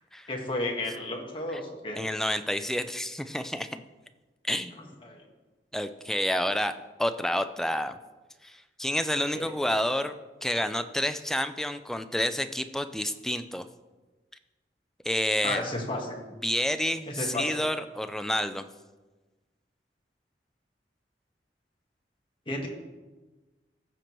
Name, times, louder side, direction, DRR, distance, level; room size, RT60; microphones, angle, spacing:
voice 1, 0.3-2.0 5.0-5.2 9.3-9.4 15.4-16.2 17.1-17.6 22.5-22.7, left 2 dB, 30° left, 0 dB, 1.4 m, -32 dB
voice 2, 2.0-3.8 4.5-4.9 5.7-8.0 8.4-10.1 10.4-13.7 15.0-15.6 16.4-18.6, left 1 dB, 5° left, 9 dB, 0.3 m, -29 dB
15.0 x 5.9 x 3.0 m, 1.2 s
head